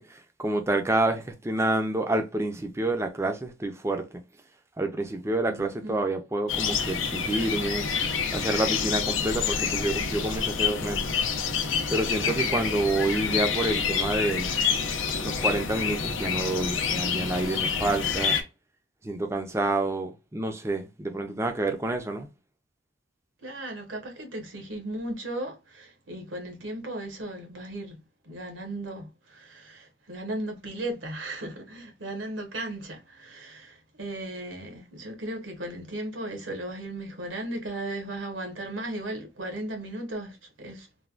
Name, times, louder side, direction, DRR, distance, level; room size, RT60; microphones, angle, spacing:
voice 1, 0.0-4.2 4.8-7.8 8.3-11.1 11.9-14.5 15.2-18.4 19.0-22.3, right 2 dB, 15° right, 0.4 m, -28 dB
voice 2, 5.4-6.0 12.2-12.6 23.4-28.0 28.2-40.9, right 1 dB, 80° right, 1.1 m, -36 dB
sound 1, 6.5-18.4, left 6 dB, 85° left, 0.6 m, -28 dB
3.2 x 2.2 x 2.4 m
head